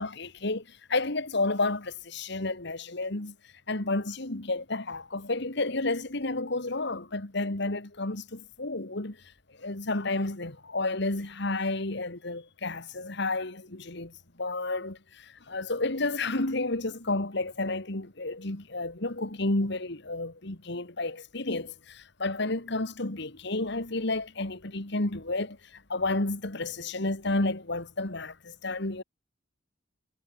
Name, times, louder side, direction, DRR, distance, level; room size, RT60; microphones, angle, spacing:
voice 1, 0.0-3.3 3.7-9.2 9.6-14.1 14.4-29.0, left 2 dB, 60° left, 2.3 m, -31 dB
head